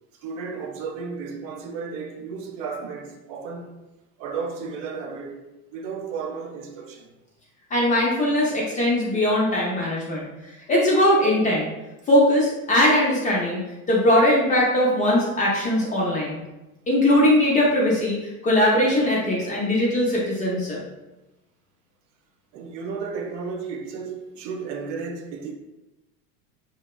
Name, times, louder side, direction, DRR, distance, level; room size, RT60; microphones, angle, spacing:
voice 1, 0.2-3.8 4.2-5.5 5.7-7.1 22.5-25.5, right 5 dB, 55° right, 0.5 m, -33 dB
voice 2, 7.7-11.7 12.1-13.6 13.9-16.4 16.9-20.8, left 1 dB, 20° left, 0.4 m, -20 dB
2.8 x 2.1 x 2.2 m
hypercardioid pair, 85°, 45 cm